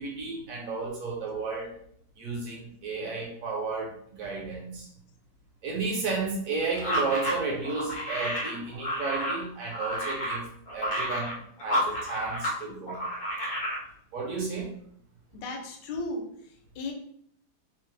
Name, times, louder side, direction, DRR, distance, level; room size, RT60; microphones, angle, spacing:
voice 1, 0.0-1.7 2.2-4.9 5.6-10.5 10.7-13.0 14.1-14.7, right 4 dB, 60° right, -2 dB, 1.1 m, -33 dB
sound 1, 6.8-12.6 12.9-13.8, equal, 65° left, 0.5 m, -31 dB
voice 2, 15.3-16.9, left 2 dB, 85° left, 2 dB, 1.3 m, -36 dB
3.1 x 2.1 x 3.2 m, 0.65 s
omnidirectional pair, 1.9 m